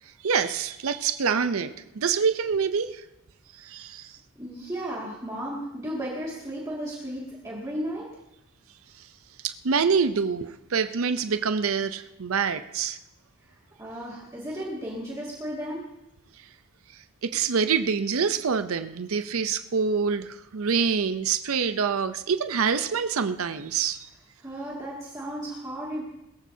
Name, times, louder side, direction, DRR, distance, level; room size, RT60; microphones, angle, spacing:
voice 1, 0.2-3.0 3.6-4.2 9.0-9.1 9.4-13.0 17.2-24.1, right 6 dB, 80° right, 10 dB, 0.6 m, -26 dB
voice 2, 4.4-8.1 13.4-15.8 24.4-26.0, equal, 15° right, -6 dB, 2.1 m, -34 dB
21.5 x 14.5 x 2.8 m, 0.88 s
head